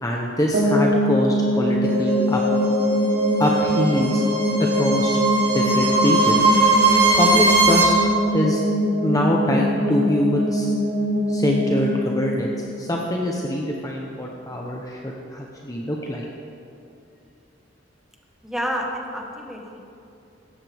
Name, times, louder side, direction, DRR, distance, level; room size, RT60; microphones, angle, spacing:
voice 1, 0.0-2.4 3.4-4.2 4.6-5.2 5.5-6.5 7.2-8.0 8.3-8.6 9.0-10.7 11.3-16.2, left 1 dB, 20° left, -1 dB, 0.9 m, -24 dB
sound 1, 0.5-13.4, equal, 90° right, 2.7 m, -23 dB
sound 2, 1.8-7.8, right 2 dB, 60° right, 2.2 m, -20 dB
voice 2, 18.4-19.8, equal, ahead, 0 dB, 1.4 m, -29 dB
16.5 x 14.0 x 3.6 m, 2.7 s
head